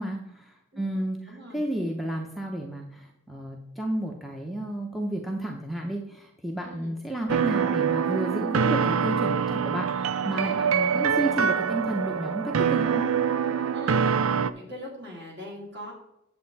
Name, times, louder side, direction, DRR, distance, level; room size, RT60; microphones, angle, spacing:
voice 1, 0.0-13.1, right 1 dB, ahead, 0 dB, 0.8 m, -32 dB
voice 2, 1.3-1.6 6.6-6.9 13.7-14.0 14.5-15.9, left 1 dB, 50° right, -2 dB, 3.5 m, -41 dB
sound 1, 7.3-14.5, right 7 dB, 75° right, 0.5 m, -25 dB
9.2 x 7.5 x 4.1 m, 0.83 s
head